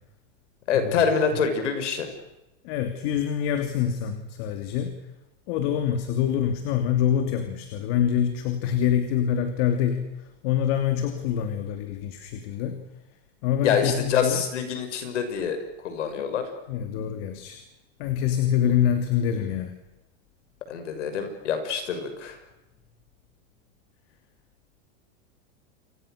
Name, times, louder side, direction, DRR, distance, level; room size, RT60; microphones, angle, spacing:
voice 1, 0.7-2.1 13.6-16.5 20.7-22.4, left 6 dB, 90° left, 7 dB, 6.4 m, -26 dB
voice 2, 2.6-5.0 5.5-12.8 13.4-14.4 16.2-16.3 16.7-17.6 18.0-19.8, left 9 dB, 60° left, 7 dB, 3.0 m, -25 dB
29.5 x 25.5 x 6.7 m, 0.98 s
supercardioid pair, 125°, 35 cm